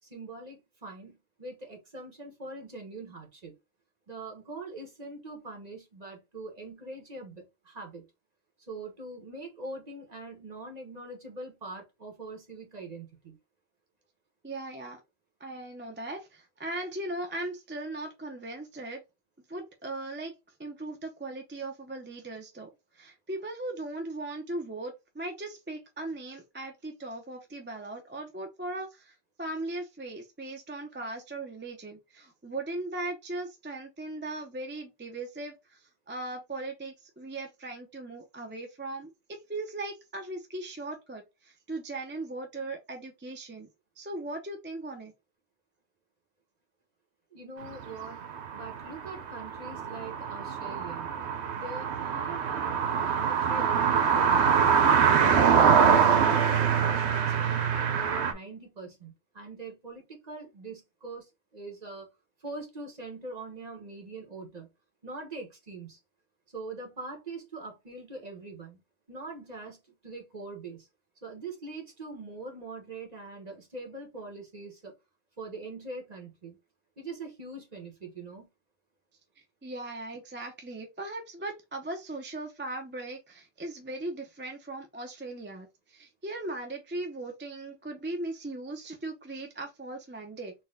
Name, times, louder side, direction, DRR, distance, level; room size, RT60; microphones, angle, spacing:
voice 1, 0.0-3.5 4.1-8.0 8.7-13.4 47.3-48.2 48.5-51.1 51.5-54.9 55.3-62.1 62.4-64.7 65.0-66.0 66.5-68.8 69.1-69.8 70.0-70.9 71.2-74.9 75.4-76.6 77.0-78.5, right 3 dB, 40° right, 1.3 m, -42 dB
voice 2, 14.4-15.0 15.4-19.0 19.5-20.3 20.6-43.7 44.0-45.1 79.6-90.5, right 2 dB, 15° right, 0.4 m, -38 dB
sound 1, 47.7-58.3, right 7 dB, 75° right, 1.0 m, -24 dB
4.1 x 2.2 x 3.7 m
omnidirectional pair, 1.1 m